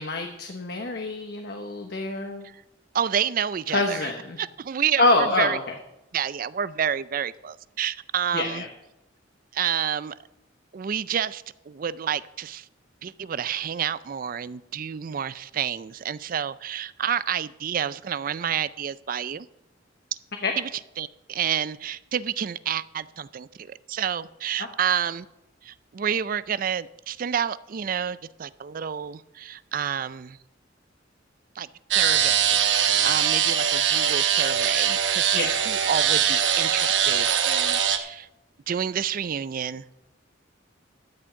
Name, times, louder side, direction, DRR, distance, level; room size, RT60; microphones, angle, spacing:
voice 1, 0.0-2.4 3.7-4.4 5.0-5.6 8.3-8.7 20.4-20.5 24.6-24.7 35.3-35.5, left 2 dB, 60° left, 4 dB, 1.1 m, -25 dB
voice 2, 2.9-4.1 4.4-5.6 6.1-8.6 9.5-10.1 10.7-12.7 13.0-19.5 20.6-20.7 21.0-25.3 25.6-30.4 31.6-31.7 32.0-38.3 38.7-39.8, right 8 dB, 45° right, 17 dB, 0.4 m, -29 dB
sound 1, 31.9-38.0, right 8 dB, 75° right, 1.0 m, -22 dB
13.0 x 6.2 x 8.1 m, 0.91 s
head